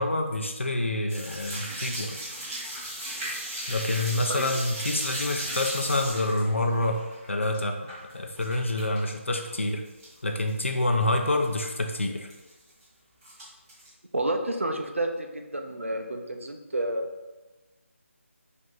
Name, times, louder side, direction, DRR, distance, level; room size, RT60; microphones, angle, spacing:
voice 1, 0.0-2.2 3.7-7.0 7.3-7.8 8.1-9.8 10.2-12.3, left 2 dB, 60° left, 3 dB, 0.6 m, -27 dB
sound 1, 1.1-9.1 9.4-10.2 10.5-10.6 11.0-11.1 11.3-11.5 12.3-12.8 13.2-13.9, right 1 dB, 15° right, 1.0 m, -36 dB
voice 2, 14.1-17.0, right 1 dB, 65° right, 3 dB, 0.6 m, -30 dB
4.8 x 2.8 x 3.9 m, 1.1 s
figure-of-eight pair, 160°, 7 cm